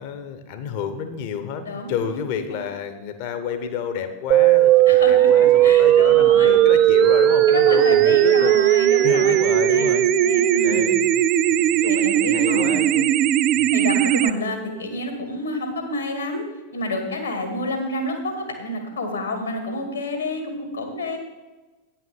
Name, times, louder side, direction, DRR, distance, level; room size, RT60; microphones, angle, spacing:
voice 1, 0.0-10.1 10.6-11.1 11.4-13.1 13.5-13.7, left 8 dB, 45° left, 8 dB, 0.9 m, -30 dB
voice 2, 1.7-2.1 2.5-2.7 4.9-6.6 7.5-10.9 11.6-12.8 13.7-16.4 16.7-21.2, left 2 dB, 80° left, 4 dB, 1.9 m, -29 dB
sound 1, 4.3-14.3, right 12 dB, 35° right, 0.4 m, -17 dB
9.1 x 5.8 x 7.0 m, 1.2 s
figure-of-eight pair, 90°, 0 cm